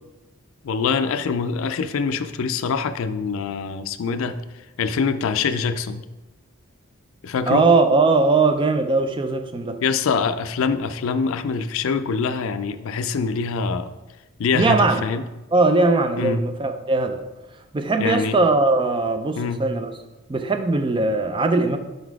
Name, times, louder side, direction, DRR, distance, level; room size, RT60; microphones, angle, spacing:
voice 1, 0.6-4.4 4.8-6.1 7.2-7.7 9.8-13.9 14.4-15.2 16.2-16.4 18.0-18.4 19.4-19.6, left 5 dB, 65° left, 11 dB, 0.4 m, -24 dB
voice 2, 7.5-9.8 14.5-15.0 15.5-17.2 17.7-19.9 20.3-21.8, right 3 dB, 20° right, 7 dB, 0.3 m, -20 dB
5.2 x 4.0 x 4.6 m, 1.1 s
head